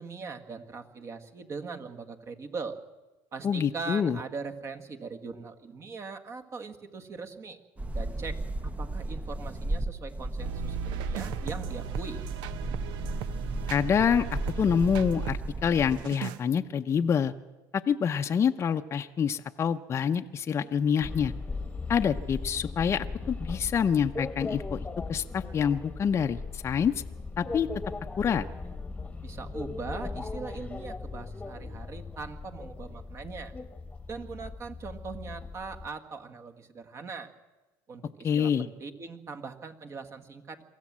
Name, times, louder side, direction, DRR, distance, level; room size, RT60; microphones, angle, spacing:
voice 1, 0.0-2.8 3.3-7.6 7.9-12.2 29.2-33.5 34.1-37.3 37.9-40.6, right 4 dB, 35° right, 8 dB, 1.6 m, -40 dB
voice 2, 3.4-4.2 13.7-17.3 17.7-21.3 21.9-26.9 27.4-27.7 28.2-28.4 38.2-38.7, left 7 dB, 35° left, 6 dB, 0.7 m, -26 dB
sound 1, 7.8-16.0, right 1 dB, 15° right, 0.9 m, -35 dB
sound 2, 10.4-15.4 15.9-16.4, right 10 dB, 70° right, 0.8 m, -37 dB
sound 3, 21.0-35.9, left 3 dB, 15° left, 1.2 m, -38 dB
23.5 x 15.0 x 7.4 m, 1.2 s
supercardioid pair, 100°, 8 cm